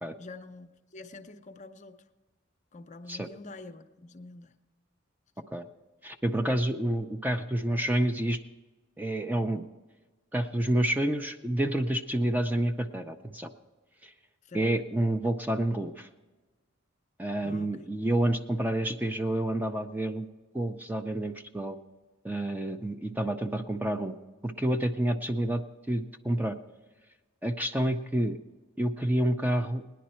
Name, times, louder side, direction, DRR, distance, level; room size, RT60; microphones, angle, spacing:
voice 1, 0.2-2.0 2.7-4.5 14.4-14.7 17.4-17.9, left 2 dB, 35° left, 8 dB, 0.6 m, -46 dB
voice 2, 6.0-8.4 9.0-9.7 10.3-13.5 14.0-14.1 14.5-16.1 17.2-20.3 20.5-21.8 22.2-24.2 24.4-25.6 25.9-26.6 27.4-28.4 28.8-29.8, right 1 dB, 10° right, 6 dB, 0.4 m, -29 dB
18.0 x 10.5 x 4.3 m, 1.2 s
head